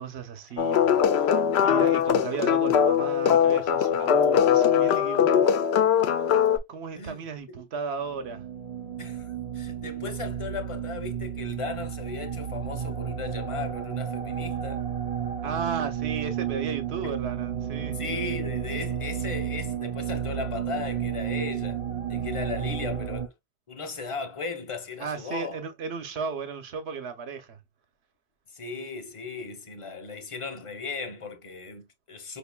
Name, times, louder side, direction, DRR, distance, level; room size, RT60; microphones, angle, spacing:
voice 1, 0.0-5.6 6.7-8.4 15.4-18.0 25.0-27.6, right 5 dB, 90° right, 1.0 m, -35 dB
sound 1, 0.6-6.6, left 8 dB, 85° left, 0.8 m, -21 dB
voice 2, 6.9-7.7 9.0-14.9 17.0-17.2 17.9-21.8 22.1-23.3 23.7-25.6 28.5-32.4, left 4 dB, 35° left, 0.7 m, -36 dB
sound 2, 8.0-23.3, right 9 dB, 45° right, 0.6 m, -32 dB
5.0 x 2.5 x 2.2 m
omnidirectional pair, 1.1 m